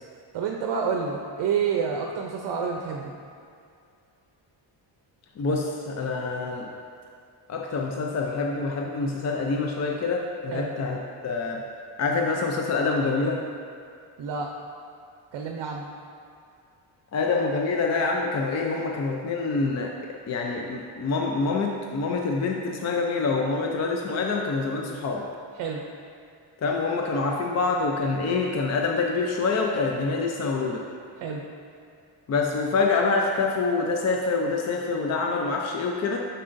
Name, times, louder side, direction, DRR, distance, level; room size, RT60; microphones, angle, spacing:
voice 1, 0.3-3.1 10.5-10.7 14.2-14.5 15.3-15.9 25.5-25.8 31.2-31.4, right 6 dB, 60° right, 1 dB, 0.6 m, -28 dB
voice 2, 5.4-6.7 7.5-11.6 12.0-13.4 17.1-19.9 20.3-25.2 26.6-30.8 32.3-36.2, left 4 dB, 35° left, 0 dB, 0.4 m, -26 dB
7.5 x 6.7 x 2.5 m, 2.4 s
cardioid pair, 140°, 47 cm